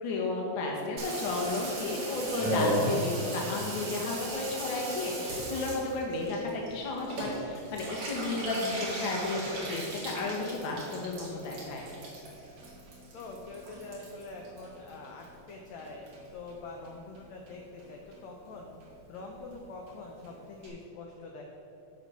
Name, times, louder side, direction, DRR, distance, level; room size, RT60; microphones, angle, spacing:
voice 1, 0.0-11.8, left 2 dB, 55° left, -1 dB, 1.4 m, -33 dB
Water tap faucet / Bathtub (filling or washing), 1.0-15.5 15.8-16.5 16.8-16.9 17.1-17.2 17.5-17.8 18.1-18.2 18.5-18.6 18.8-18.9 19.1-19.2 19.5-19.6 19.9-20.0 20.2-20.3 20.6-20.7, right 1 dB, 55° right, 3.0 m, -36 dB
voice 2, 9.3-9.8 13.1-16.1 16.3-18.8 19.1-21.4, left 3 dB, 75° left, 0 dB, 1.6 m, -44 dB
8.5 x 5.9 x 6.3 m, 3.0 s
omnidirectional pair, 4.1 m